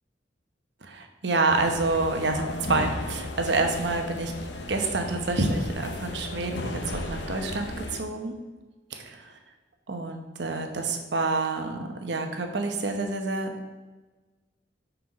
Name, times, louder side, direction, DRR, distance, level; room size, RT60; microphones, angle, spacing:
voice 1, 0.8-4.3 4.7-8.3 8.9-9.3 9.9-13.5, right 3 dB, 70° right, 5 dB, 0.9 m, -28 dB
sound 1, 1.5-8.0, left 2 dB, 70° left, 0.7 m, -35 dB
5.9 x 4.6 x 5.2 m, 1.2 s
head